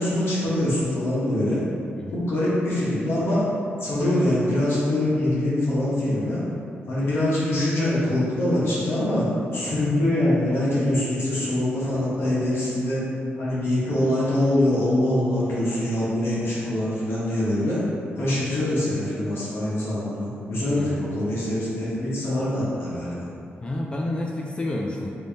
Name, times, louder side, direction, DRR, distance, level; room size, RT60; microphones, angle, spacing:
voice 1, 0.0-1.6 2.1-3.4 3.8-6.4 6.9-9.2 9.5-13.0 13.4-17.8 18.1-23.3, left 1 dB, 70° left, -9 dB, 1.0 m, -24 dB
voice 2, 20.8-21.3 23.6-25.1, left 1 dB, 25° left, -1 dB, 0.3 m, -30 dB
3.3 x 2.6 x 3.3 m, 2.5 s
cardioid pair, 90°, 4 cm